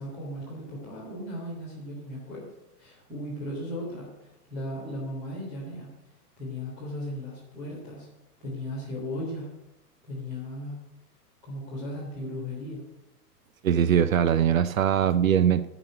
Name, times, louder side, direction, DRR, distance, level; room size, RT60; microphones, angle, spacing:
voice 1, 0.0-2.4 2.8-5.9 6.4-8.1 8.4-9.5 10.0-10.7 11.4-12.8, left 1 dB, ahead, -10 dB, 0.3 m, -36 dB
voice 2, 13.6-15.7, right 9 dB, 55° right, 15 dB, 0.6 m, -21 dB
9.9 x 6.1 x 7.9 m, 0.95 s
figure-of-eight pair, 105°, 48 cm